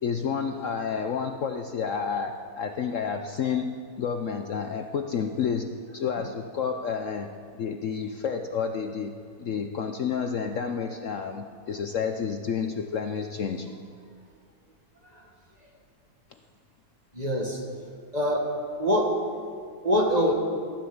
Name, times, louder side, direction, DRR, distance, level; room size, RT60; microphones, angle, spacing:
voice 1, 0.0-7.3 7.6-9.1 9.4-13.7, left 6 dB, 60° left, 6 dB, 1.0 m, -30 dB
voice 2, 17.1-17.6 18.1-19.2 19.8-20.3, equal, 25° right, 1 dB, 1.8 m, -24 dB
15.0 x 13.0 x 7.2 m, 2.2 s
omnidirectional pair, 1.7 m